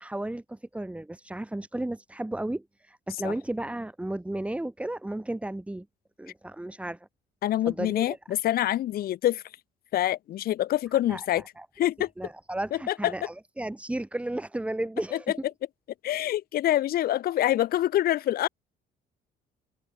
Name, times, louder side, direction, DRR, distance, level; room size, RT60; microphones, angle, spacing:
voice 1, 0.0-5.9 6.2-7.1 7.7-8.2 11.1-11.2 11.6-11.7 12.2-15.3, right 1 dB, 5° right, 2.3 m, -34 dB
voice 2, 7.4-9.4 9.9-11.4 11.8-12.1 12.9-13.1 15.1-15.2 16.0-18.5, left 13 dB, 60° left, 1.2 m, -26 dB
open air
cardioid pair, 110°, 17 cm